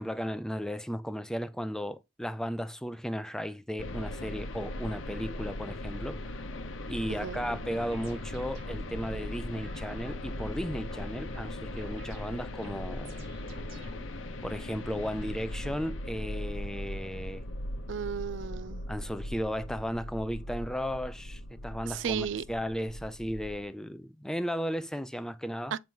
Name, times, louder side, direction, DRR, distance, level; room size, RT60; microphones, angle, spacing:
voice 1, 0.0-6.4 6.9-13.4 14.4-17.4 18.9-25.8, equal, 5° left, 0.4 m, -35 dB
sound 1, 3.8-23.6, left 1 dB, 80° left, 0.8 m, -39 dB
sound 2, 7.5-14.3, equal, 90° right, 2.6 m, -49 dB
voice 2, 17.9-18.8 21.9-22.4 25.7-25.8, right 7 dB, 70° right, 0.4 m, -34 dB
7.5 x 3.0 x 5.3 m
head